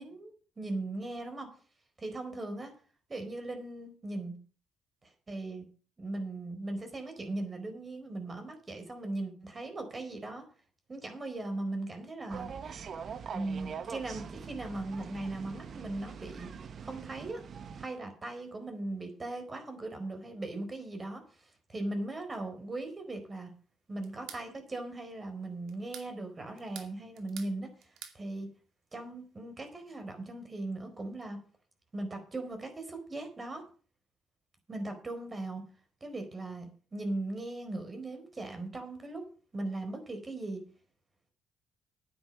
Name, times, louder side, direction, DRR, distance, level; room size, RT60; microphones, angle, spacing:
voice 1, 0.0-1.5 2.0-2.7 3.1-4.3 5.0-5.6 6.0-10.4 10.9-12.5 13.3-16.5 16.8-17.4 17.8-23.5 23.9-27.7 28.1-28.5 28.9-31.4 31.9-33.6 34.7-35.6 36.0-39.2 39.5-40.6, right 2 dB, 30° right, 6 dB, 4.4 m, -38 dB
sound 1, 12.3-17.9, right 6 dB, 55° right, 1.1 m, -43 dB
sound 2, 24.0-24.5 25.7-26.1 26.6-27.5 27.8-28.2, right 9 dB, 85° right, 2.3 m, -47 dB
9.9 x 9.3 x 6.0 m, 0.39 s
cardioid pair, 90°, 0 cm